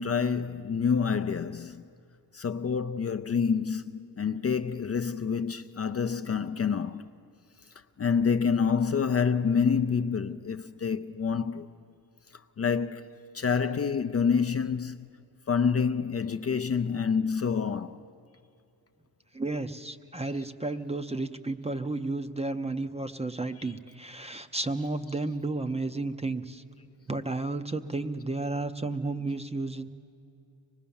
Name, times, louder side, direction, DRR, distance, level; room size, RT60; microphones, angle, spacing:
voice 1, 0.0-1.8 2.3-7.1 8.0-11.7 12.6-15.2 15.5-18.0, left 6 dB, 35° left, 0.5 m, -27 dB
voice 2, 19.3-26.6 27.1-29.9, right 2 dB, 15° right, 0.6 m, -32 dB
25.0 x 20.0 x 7.1 m
wide cardioid pair, 150°, 41 cm